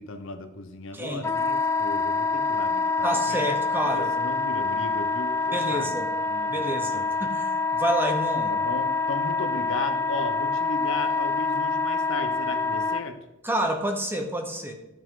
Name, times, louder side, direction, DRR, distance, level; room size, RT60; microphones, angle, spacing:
voice 1, 0.0-3.4 3.9-5.9 6.2-7.0 8.5-13.2, left 2 dB, 60° left, 7 dB, 0.8 m, -36 dB
Wind instrument woodwind instrument, 1.2-13.0, left 4 dB, 15° left, 0.3 m, -26 dB
voice 2, 3.0-4.1 5.5-6.1 6.5-8.5 13.4-14.7, right 1 dB, 10° right, 4 dB, 0.9 m, -28 dB
12.5 x 5.1 x 3.8 m, 0.97 s
head